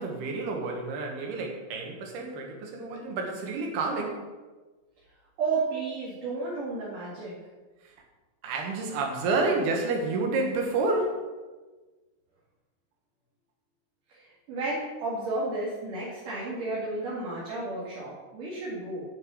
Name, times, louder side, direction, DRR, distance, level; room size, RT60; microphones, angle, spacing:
voice 1, 0.0-4.3 8.4-11.3, right 3 dB, 75° right, 1 dB, 3.7 m, -29 dB
voice 2, 5.4-7.3 14.1-19.0, right 3 dB, 60° right, -7 dB, 3.6 m, -32 dB
9.3 x 6.8 x 7.8 m, 1.3 s
omnidirectional pair, 4.5 m